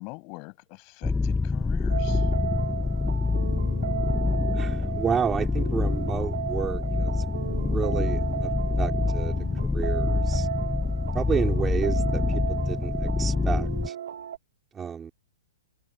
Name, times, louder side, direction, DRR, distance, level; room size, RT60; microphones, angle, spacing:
voice 1, 0.0-2.3, left 31 dB, 35° left, 7.3 m, -43 dB
sound 1, 1.0-13.9, left 4 dB, 5° left, 1.1 m, -26 dB
sound 2, 1.9-14.4, right 10 dB, 70° right, 4.1 m, -35 dB
voice 2, 4.6-8.5 8.8-9.4 9.7-10.5 11.1-13.9 14.7-15.1, right 7 dB, 15° right, 3.9 m, -31 dB
hypercardioid pair, 155°, 0 cm